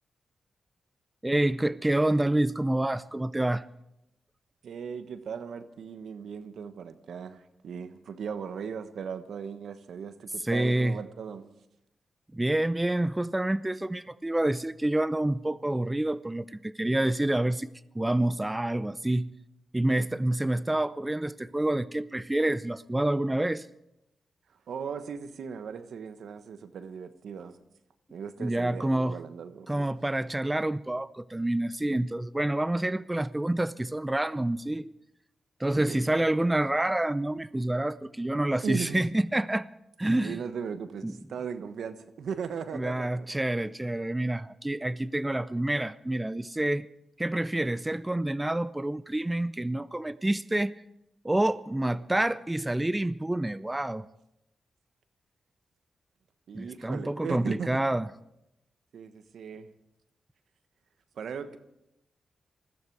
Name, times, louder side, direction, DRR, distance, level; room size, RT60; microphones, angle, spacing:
voice 1, 1.2-3.6 10.4-11.0 12.3-17.7 17.9-19.3 19.7-23.7 28.4-29.2 29.7-34.9 35.6-39.7 40.0-40.4 41.0-41.2 42.7-46.9 47.2-50.8 51.2-54.1 56.5-58.1, right 1 dB, 15° right, 17 dB, 0.6 m, -28 dB
voice 2, 4.6-11.5 24.7-27.6 28.1-29.9 35.7-36.0 38.6-39.1 40.2-43.3 56.5-57.8 58.9-59.7 61.1-61.6, right 6 dB, 75° right, 11 dB, 1.2 m, -38 dB
20.5 x 15.0 x 4.7 m, 0.86 s
supercardioid pair, 45°, 0 cm